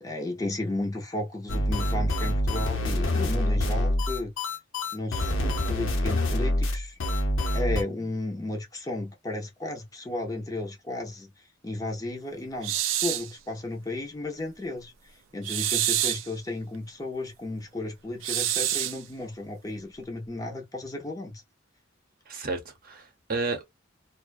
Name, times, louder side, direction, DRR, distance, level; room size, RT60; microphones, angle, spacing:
voice 1, 0.0-4.3 4.9-6.9 7.5-11.3 11.6-14.9 15.3-21.4, left 2 dB, 20° left, 0.5 m, -34 dB
sound 1, 1.5-7.8, left 1 dB, 85° left, 0.7 m, -26 dB
sound 2, 12.6-13.3 15.4-16.3 18.2-19.0, right 12 dB, 80° right, 0.4 m, -27 dB
voice 2, 22.3-23.6, right 3 dB, 50° right, 0.7 m, -32 dB
2.4 x 2.2 x 2.3 m
head